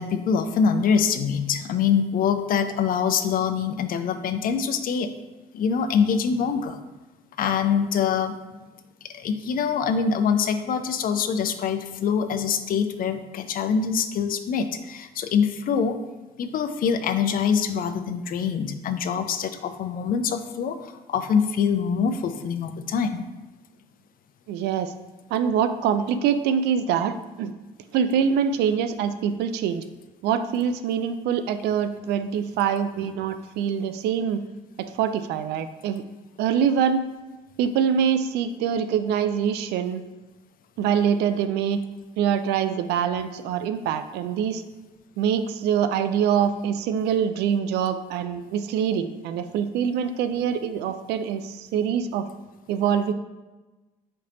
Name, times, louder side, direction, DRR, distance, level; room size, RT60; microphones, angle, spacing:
voice 1, 0.0-5.1 5.5-6.8 7.4-8.4 9.1-16.0 16.4-23.3, left 6 dB, 50° left, 9 dB, 0.5 m, -24 dB
voice 2, 24.5-24.9 25.3-27.5 27.9-29.8 30.2-34.4 34.8-36.0 36.4-37.0 37.6-40.0 40.8-41.8 42.2-44.6 45.2-52.3 52.7-53.1, right 8 dB, 65° right, 10 dB, 0.4 m, -24 dB
4.3 x 3.2 x 3.8 m, 1.2 s
hypercardioid pair, 55°, 18 cm